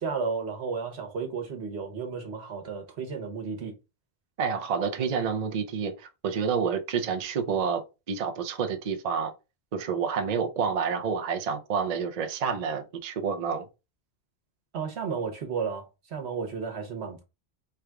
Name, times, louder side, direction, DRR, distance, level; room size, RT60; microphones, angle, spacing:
voice 1, 0.0-3.7 14.7-17.2, right 5 dB, 80° right, 1.3 m, -33 dB
voice 2, 4.4-9.3 9.7-13.7, right 6 dB, 50° right, 0.5 m, -29 dB
3.4 x 2.4 x 4.4 m
omnidirectional pair, 1.1 m